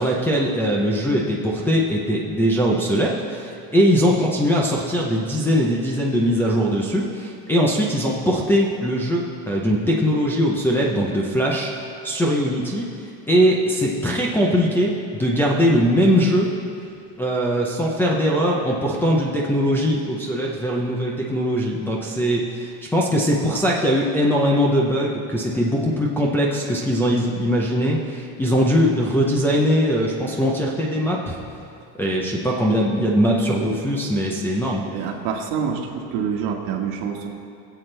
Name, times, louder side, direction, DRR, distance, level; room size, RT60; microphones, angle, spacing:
voice 1, 0.0-11.7 12.0-16.5 17.2-31.4 32.0-34.9, equal, 5° left, -5 dB, 0.6 m, -21 dB
voice 2, 34.9-37.3, right 7 dB, 60° right, 2 dB, 1.5 m, -26 dB
21.5 x 7.8 x 3.3 m, 2.5 s
cardioid pair, 170°, 40 cm